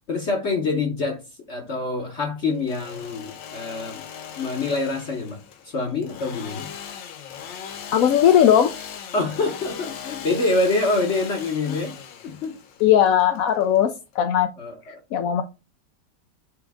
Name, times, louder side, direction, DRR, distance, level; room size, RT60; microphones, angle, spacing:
voice 1, 0.1-1.2 1.5-4.0 4.4-5.4 5.7-6.7 9.1-12.6 14.6-14.7, left 3 dB, 45° left, 1.0 m, -26 dB
Engine / Sawing, 2.5-14.2, left 8 dB, 85° left, 1.6 m, -39 dB
voice 2, 7.9-8.7 12.8-14.5 15.1-15.4, left 10 dB, 70° left, 0.8 m, -18 dB
7.9 x 3.6 x 3.6 m
omnidirectional pair, 2.0 m